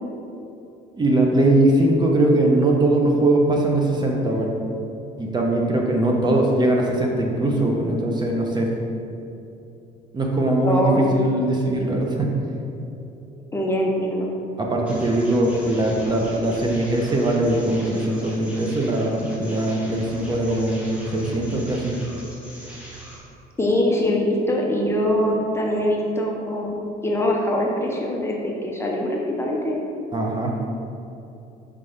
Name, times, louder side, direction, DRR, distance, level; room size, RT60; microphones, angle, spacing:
voice 1, 1.0-4.5 5.2-8.7 10.1-12.3 14.6-22.0 30.1-30.5, right 1 dB, 25° right, 0 dB, 0.8 m, -21 dB
voice 2, 10.6-11.0 13.5-14.3 23.6-26.7 27.0-29.8, left 1 dB, 15° left, -2 dB, 0.7 m, -23 dB
sound 1, 14.8-23.2, equal, 5° right, 1.4 m, -39 dB
5.5 x 5.1 x 3.3 m, 2.8 s
cardioid pair, 110°, 17 cm